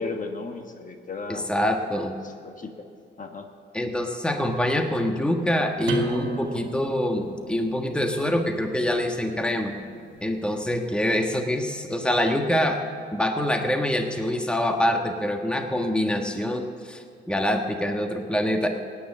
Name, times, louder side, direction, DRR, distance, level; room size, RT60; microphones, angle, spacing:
voice 1, 0.0-1.5 2.2-2.9 3.2-3.5, left 3 dB, 40° left, 5 dB, 1.3 m, -35 dB
voice 2, 1.3-2.1 3.7-9.7 10.2-12.8 13.1-18.7, left 1 dB, 5° left, 4 dB, 1.3 m, -25 dB
sound 1, 5.8-11.2, right 3 dB, 75° right, 2.0 m, -37 dB
17.0 x 9.8 x 7.3 m, 2.3 s
cardioid pair, 90°, 20 cm